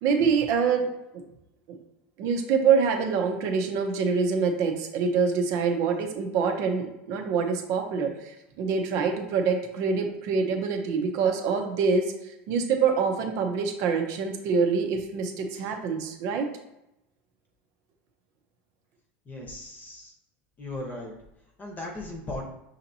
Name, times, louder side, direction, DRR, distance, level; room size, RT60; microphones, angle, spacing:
voice 1, 0.0-1.2 1.7-1.8 2.2-16.5, right 5 dB, 60° right, 4 dB, 0.8 m, -25 dB
voice 2, 19.3-20.1 20.6-21.1 21.6-22.5, left 2 dB, 25° left, 0 dB, 0.9 m, -37 dB
5.7 x 2.9 x 2.7 m, 0.86 s
supercardioid pair, 115°, 6 cm